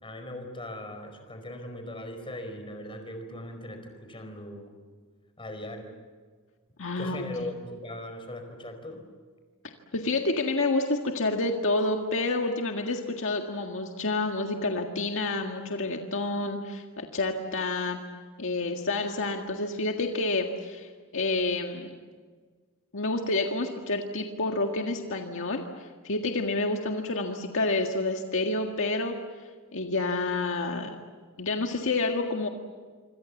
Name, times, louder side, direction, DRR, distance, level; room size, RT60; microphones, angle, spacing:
voice 1, 0.0-4.8 5.4-5.9 7.0-9.0, left 1 dB, 25° left, 6 dB, 4.8 m, -39 dB
voice 2, 6.8-7.2 9.9-18.0 18.4-21.9 22.9-29.1 29.7-31.0 31.4-32.5, left 2 dB, 60° left, 3 dB, 1.9 m, -29 dB
26.5 x 26.0 x 7.3 m, 1.5 s
head